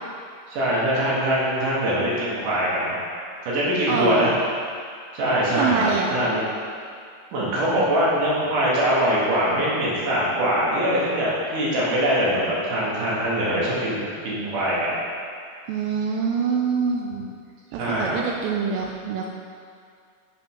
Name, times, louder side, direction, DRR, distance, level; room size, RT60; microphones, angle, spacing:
voice 1, 0.5-3.0 3.4-4.3 5.1-6.6 7.3-15.0 17.8-18.2, equal, 60° right, -7 dB, 3.1 m, -23 dB
voice 2, 3.9-4.4 5.6-6.1 15.7-17.3 17.7-19.3, right 5 dB, 85° right, 0 dB, 2.1 m, -25 dB
7.7 x 5.5 x 5.2 m, 2.3 s
omnidirectional pair, 4.7 m